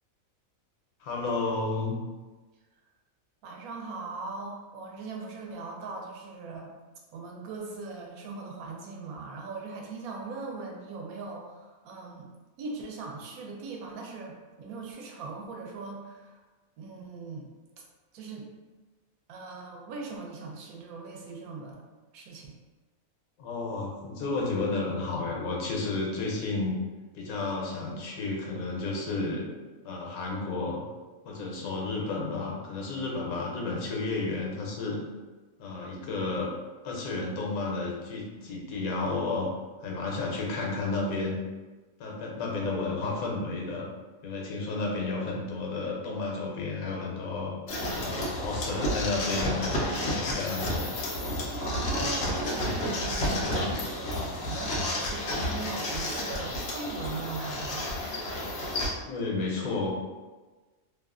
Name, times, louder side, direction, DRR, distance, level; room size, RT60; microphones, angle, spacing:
voice 1, 1.0-1.9 23.4-26.8 27.1-29.5 29.8-30.8 31.2-35.0 35.6-36.5 36.8-39.5 39.8-41.4 42.0-43.9 44.2-47.5 48.0-50.9 59.1-59.9, left 3 dB, 90° left, -2 dB, 1.1 m, -32 dB
voice 2, 3.4-6.8 7.1-12.3 12.6-16.4 16.8-17.5 17.8-17.9 18.1-18.5 19.3-21.9 22.1-22.5 51.6-54.1 54.4-58.0, right 4 dB, 90° right, 0 dB, 1.0 m, -40 dB
sound 1, 47.7-58.9, left 1 dB, 65° left, 0.8 m, -31 dB
2.7 x 2.3 x 2.3 m, 1.3 s
omnidirectional pair, 1.5 m